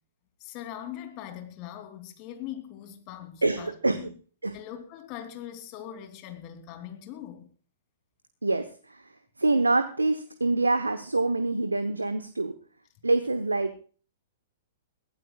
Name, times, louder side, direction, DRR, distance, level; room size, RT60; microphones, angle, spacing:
voice 1, 0.4-4.1 4.5-7.5, left 11 dB, 40° left, 3.1 m, -41 dB
voice 2, 3.4-4.1 4.4-4.5 8.4-9.1 9.4-12.5 13.0-13.8, right 2 dB, 85° right, 1.0 m, -26 dB
21.5 x 16.0 x 2.4 m
figure-of-eight pair, 110°, 0 cm